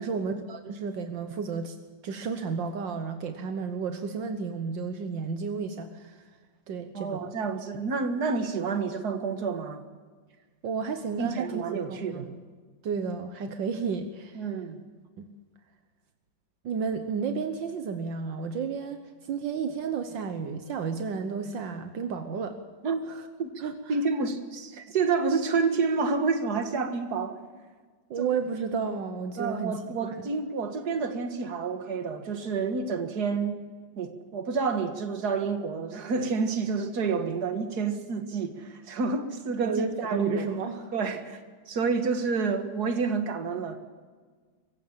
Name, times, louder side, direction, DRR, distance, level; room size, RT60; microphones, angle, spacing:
voice 1, 0.0-1.8 2.0-6.2 6.7-7.3 10.6-12.4 12.8-14.5 15.2-15.3 16.6-22.6 23.1-23.2 23.6-24.0 28.1-30.3 39.7-40.8, right 5 dB, 80° right, 7 dB, 1.8 m, -32 dB
voice 2, 6.9-9.8 11.2-12.3 14.4-14.8 22.8-23.0 23.4-23.5 23.9-27.4 28.2-28.3 29.4-33.6 34.0-39.9 40.1-40.5 40.9-41.4 41.7-43.8, right 4 dB, 55° right, 7 dB, 2.2 m, -29 dB
24.0 x 15.5 x 7.4 m, 1.5 s
omnidirectional pair, 2.0 m